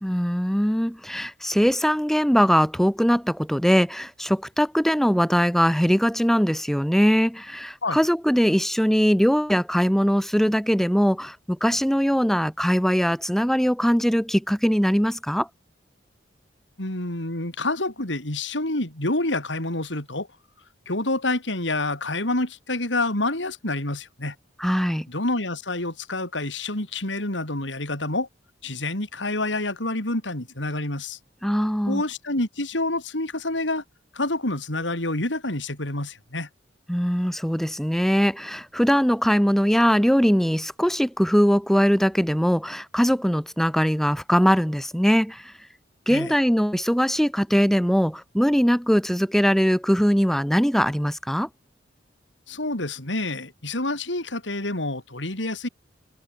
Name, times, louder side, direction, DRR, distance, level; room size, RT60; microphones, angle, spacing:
voice 1, 0.0-15.5 24.6-25.1 31.4-32.0 36.9-45.5 46.1-51.5, equal, ahead, 2.0 m, -21 dB
voice 2, 16.8-20.3 20.9-24.4 25.1-28.3 28.6-31.2 31.9-33.8 34.1-36.5 46.1-46.3 52.5-55.7, left 2 dB, 90° left, 5.4 m, -28 dB
head